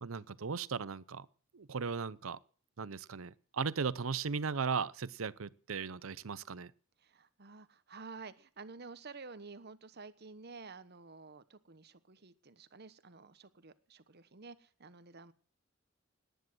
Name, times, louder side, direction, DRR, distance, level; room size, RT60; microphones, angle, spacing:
voice 1, 0.0-1.3 1.5-2.4 2.8-6.7, right 5 dB, 90° right, 0.7 m, -37 dB
voice 2, 7.0-15.3, right 4 dB, 55° right, 1.2 m, -51 dB
18.5 x 10.0 x 6.2 m
head